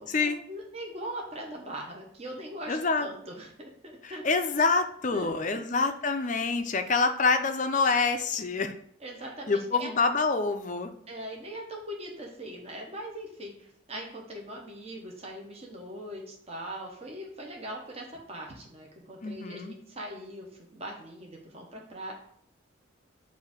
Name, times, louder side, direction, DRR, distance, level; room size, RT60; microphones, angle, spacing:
voice 1, 0.0-4.2 5.1-5.6 9.0-9.9 11.1-22.1, right 1 dB, 30° right, -1 dB, 1.0 m, -41 dB
voice 2, 2.7-3.1 4.0-8.7 9.5-10.9 19.2-19.8, left 4 dB, 40° left, 7 dB, 0.5 m, -26 dB
7.5 x 2.7 x 5.0 m, 0.64 s
head